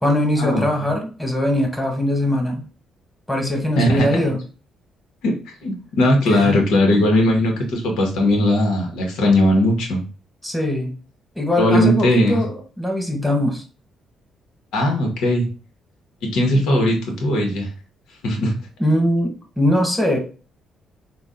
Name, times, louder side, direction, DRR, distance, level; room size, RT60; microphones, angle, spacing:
voice 1, 0.0-2.6 3.3-4.4 6.3-6.6 10.4-10.9 11.3-13.6 18.8-20.2, left 1 dB, 5° left, 2 dB, 1.5 m, -21 dB
voice 2, 3.7-4.2 5.2-10.0 11.6-12.4 14.7-15.5 16.3-17.7 18.2-18.5, left 1 dB, 85° left, 2 dB, 1.3 m, -18 dB
4.1 x 2.5 x 3.7 m, 0.35 s
cardioid pair, 90°, 0 cm